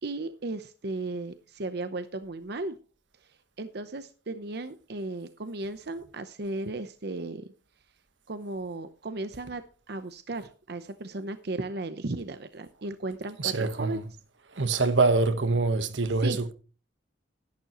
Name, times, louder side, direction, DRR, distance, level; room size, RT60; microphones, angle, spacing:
voice 1, 0.0-2.8 3.2-7.5 8.3-9.6 9.9-14.0 16.2-16.4, right 2 dB, 60° right, 0.8 m, -35 dB
voice 2, 13.4-14.0 14.5-16.5, right 3 dB, 85° right, 1.3 m, -25 dB
12.0 x 11.5 x 3.0 m
head